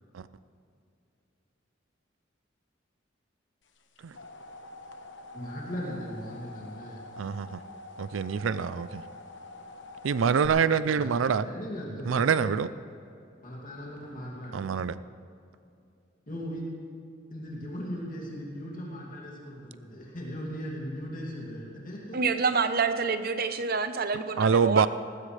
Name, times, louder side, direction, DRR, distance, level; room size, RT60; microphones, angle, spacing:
sound 1, 3.8-10.5, left 2 dB, 65° left, 1.1 m, -46 dB
voice 1, 5.3-7.0 10.9-12.4 13.4-14.7 16.3-16.7 17.3-22.2, equal, 45° left, -4 dB, 2.6 m, -38 dB
voice 2, 7.2-7.6 8.0-9.0 10.0-11.5 12.0-12.7 14.5-15.0 24.4-24.9, right 6 dB, 90° right, 15 dB, 0.4 m, -25 dB
voice 3, 22.1-24.9, right 5 dB, 50° right, 9 dB, 0.8 m, -27 dB
19.0 x 16.0 x 3.3 m, 2.6 s
head